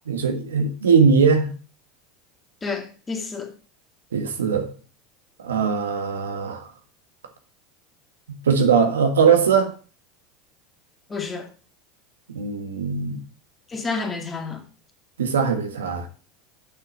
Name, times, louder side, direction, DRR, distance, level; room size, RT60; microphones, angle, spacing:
voice 1, 0.1-1.5 4.1-4.7 5.4-6.7 8.3-9.7 12.3-13.2 15.2-16.1, right 6 dB, 90° right, 1.5 m, -20 dB
voice 2, 2.6-3.5 11.1-11.5 13.7-14.6, left 4 dB, 20° left, 2.1 m, -30 dB
6.7 x 5.9 x 5.4 m
hypercardioid pair, 90°, 0 cm